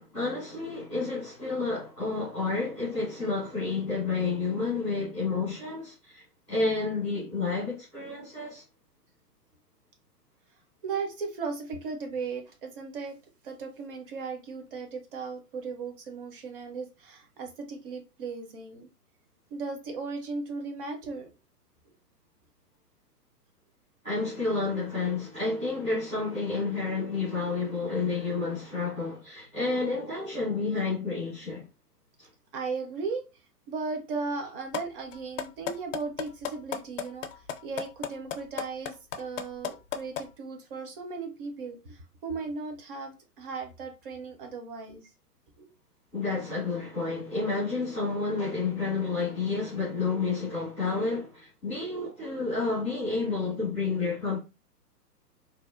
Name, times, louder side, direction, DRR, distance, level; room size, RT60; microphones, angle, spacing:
voice 1, 0.0-8.6 24.0-31.7 46.1-54.4, left 3 dB, 5° right, 0.4 m, -30 dB
voice 2, 10.8-13.2 13.4-18.9 19.5-21.3 32.5-33.2 33.7-45.1 45.6-45.7, right 4 dB, 35° right, 0.7 m, -36 dB
sound 1, 34.7-34.8 35.1-40.3, left 8 dB, 55° left, 0.5 m, -32 dB
2.7 x 2.1 x 2.4 m
figure-of-eight pair, 115°, 48 cm